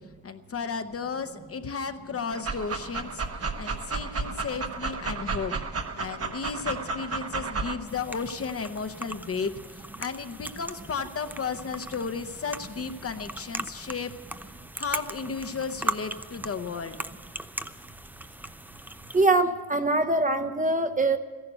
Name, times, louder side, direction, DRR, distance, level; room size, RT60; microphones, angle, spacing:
voice 1, 0.2-14.1 14.8-17.0, left 5 dB, 40° left, 8 dB, 0.8 m, -34 dB
Dog, 2.3-7.8, right 4 dB, 40° right, 1.1 m, -32 dB
sound 1, 7.9-19.3, right 1 dB, 5° right, 0.4 m, -39 dB
voice 2, 19.1-21.2, right 2 dB, 20° right, 8 dB, 0.7 m, -23 dB
14.5 x 11.0 x 8.0 m, 1.4 s
cardioid pair, 130°, 38 cm